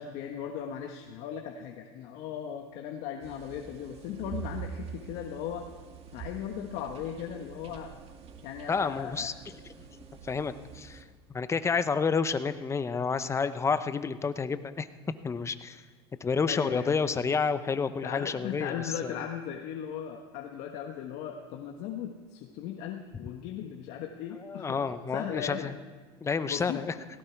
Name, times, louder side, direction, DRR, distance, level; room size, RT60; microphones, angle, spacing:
voice 1, 0.0-5.6 6.1-7.9 8.4-9.3 16.4-16.9 18.0-24.8 25.1-25.7 26.4-26.8, left 9 dB, 60° left, 3 dB, 1.4 m, -37 dB
sound 1, 3.2-11.0, right 7 dB, 45° right, 2.0 m, -45 dB
voice 2, 8.7-9.5 10.2-11.0 11.3-14.9 15.2-15.8 16.2-18.7 19.0-19.1 24.4-25.7 26.2-26.9, left 5 dB, 20° left, 12 dB, 0.8 m, -29 dB
17.5 x 16.5 x 4.6 m, 1.4 s
supercardioid pair, 110°, 14 cm